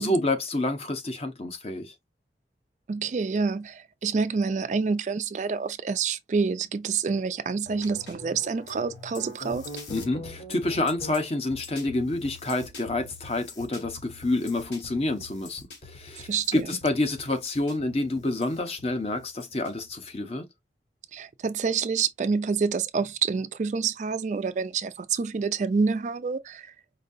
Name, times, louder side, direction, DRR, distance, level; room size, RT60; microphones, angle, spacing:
voice 1, 0.0-1.9 9.9-20.5, left 2 dB, 35° left, 0.8 m, -28 dB
voice 2, 2.9-9.7 16.3-16.7 21.1-26.7, right 5 dB, 40° right, 0.3 m, -27 dB
sound 1, 7.7-20.2, left 2 dB, 80° left, 1.9 m, -44 dB
5.1 x 2.6 x 2.6 m
head